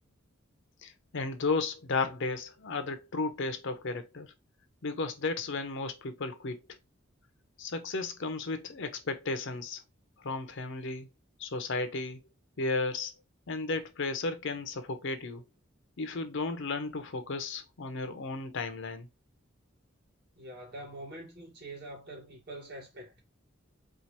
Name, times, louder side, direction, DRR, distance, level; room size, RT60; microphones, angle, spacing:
voice 1, 0.8-4.3 4.8-6.6 7.6-9.8 10.2-11.1 11.4-12.2 12.6-13.1 13.5-15.4 16.0-19.1, left 3 dB, 65° left, 0.6 m, -34 dB
voice 2, 20.4-23.2, right 1 dB, 55° right, 1.7 m, -45 dB
4.4 x 2.4 x 2.9 m
head